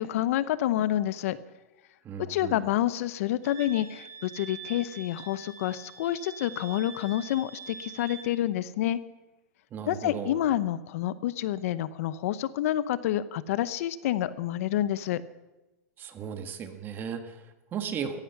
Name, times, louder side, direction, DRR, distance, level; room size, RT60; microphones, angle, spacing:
voice 1, 0.0-1.4 2.2-9.0 9.9-15.2, left 12 dB, 60° left, 16 dB, 0.8 m, -28 dB
voice 2, 2.0-2.6 9.7-10.4 16.0-18.2, right 7 dB, 25° right, 7 dB, 1.6 m, -36 dB
Wind instrument woodwind instrument, 3.4-8.3, right 5 dB, 65° right, 6.9 m, -45 dB
16.0 x 15.0 x 5.9 m, 1.1 s
supercardioid pair, 150°, 9 cm